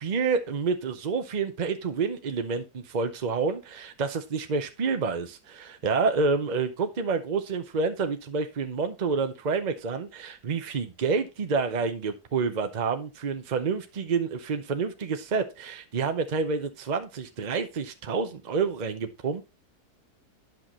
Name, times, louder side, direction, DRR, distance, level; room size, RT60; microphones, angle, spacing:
voice 1, 0.0-19.4, right 4 dB, 50° right, 8 dB, 0.5 m, -28 dB
10.5 x 6.0 x 3.0 m, 0.27 s
omnidirectional pair, 1.8 m